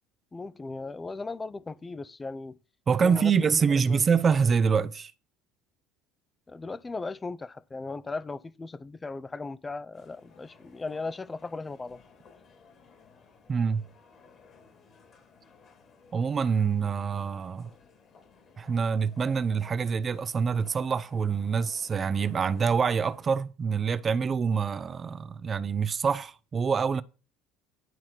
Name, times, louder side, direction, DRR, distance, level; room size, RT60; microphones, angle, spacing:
voice 1, 0.3-2.6 3.0-3.3 3.6-4.0 6.5-12.0, left 3 dB, 20° left, 0.5 m, -37 dB
voice 2, 2.9-5.1 13.5-13.9 16.1-17.7 18.6-27.0, right 6 dB, 35° right, 0.6 m, -26 dB
sound 1, 9.9-23.4, left 5 dB, 50° left, 2.9 m, -57 dB
11.0 x 4.2 x 6.0 m
hypercardioid pair, 70°, 0 cm